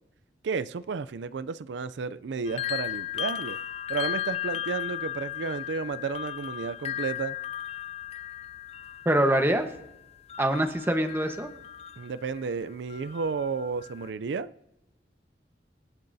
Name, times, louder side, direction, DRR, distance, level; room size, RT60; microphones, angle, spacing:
voice 1, 0.4-3.6 3.9-7.4 12.0-14.5, right 5 dB, 85° right, 16 dB, 0.4 m, -32 dB
sound 1, 2.5-12.5 12.9-14.1, left 11 dB, 35° left, 0.3 m, -36 dB
voice 2, 9.0-9.7 10.4-11.5, right 1 dB, 15° right, 5 dB, 1.1 m, -24 dB
26.5 x 10.5 x 2.7 m, 0.90 s
head